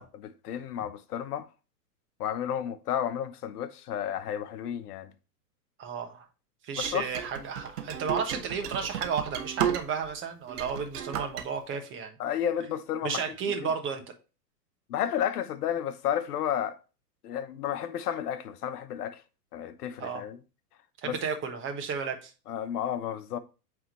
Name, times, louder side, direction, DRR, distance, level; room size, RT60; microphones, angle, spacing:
voice 1, 0.0-1.5 2.2-5.1 6.8-7.1 12.2-13.3 13.6-13.7 14.9-16.8 17.2-19.2 19.5-20.4 21.0-21.2 22.5-23.4, left 9 dB, 70° left, 1.0 m, -32 dB
voice 2, 5.8-6.2 6.6-12.2 13.0-14.0 20.0-20.2 21.0-22.3, right 6 dB, 25° right, 1.2 m, -33 dB
sound 1, 6.8-10.1 10.5-11.5, right 9 dB, 65° right, 1.1 m, -33 dB
8.6 x 3.6 x 3.1 m
hypercardioid pair, 125°, 49 cm